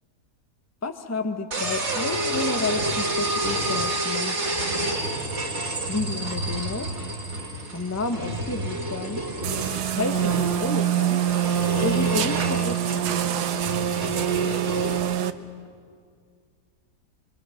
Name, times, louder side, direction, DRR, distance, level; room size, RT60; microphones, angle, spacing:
voice 1, 0.8-4.6 5.9-6.9 7.7-9.3 9.9-11.2 11.7-13.7, left 3 dB, 10° left, 8 dB, 0.8 m, -31 dB
sound 1, 1.5-15.0, right 2 dB, 40° right, 2.5 m, -29 dB
sound 2, 9.4-15.3, right 10 dB, 75° right, 1.3 m, -25 dB
26.0 x 22.5 x 6.4 m, 2.1 s
omnidirectional pair, 1.8 m